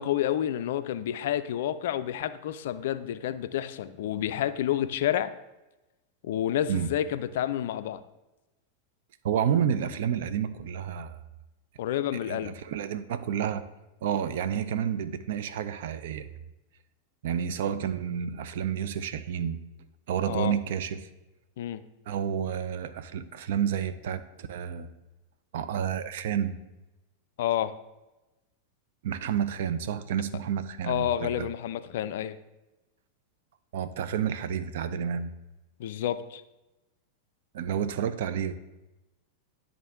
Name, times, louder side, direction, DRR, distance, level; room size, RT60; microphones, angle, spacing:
voice 1, 0.0-5.3 6.2-8.0 11.8-12.6 20.3-20.5 21.6-21.8 27.4-27.7 30.8-32.4 35.8-36.4, left 11 dB, 55° left, 12 dB, 0.3 m, -29 dB
voice 2, 9.2-11.2 12.2-13.7 14.0-16.3 17.2-19.6 20.1-21.1 22.1-24.9 25.5-26.6 29.0-31.5 33.7-35.3 37.5-38.6, right 8 dB, 55° right, 11 dB, 0.4 m, -30 dB
10.0 x 3.6 x 3.6 m, 1.0 s
figure-of-eight pair, 90°, 0 cm